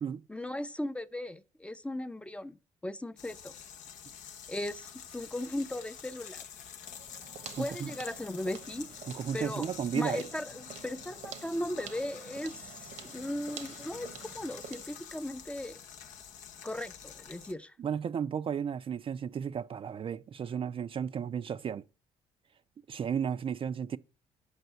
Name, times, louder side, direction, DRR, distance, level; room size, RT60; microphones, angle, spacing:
voice 1, 0.3-2.6 2.8-3.5 4.5-6.4 7.6-8.9 9.3-9.7 9.9-15.8 16.6-17.7, left 1 dB, 10° left, 0.5 m, -37 dB
sound 1, 3.2-17.5, left 8 dB, 80° left, 0.8 m, -48 dB
sound 2, 6.8-15.0, right 8 dB, 75° right, 1.2 m, -49 dB
voice 2, 7.6-7.9 9.1-10.2 17.8-21.8 22.9-24.0, right 7 dB, 45° right, 0.4 m, -34 dB
8.0 x 5.4 x 6.7 m
cardioid pair, 80°, 13 cm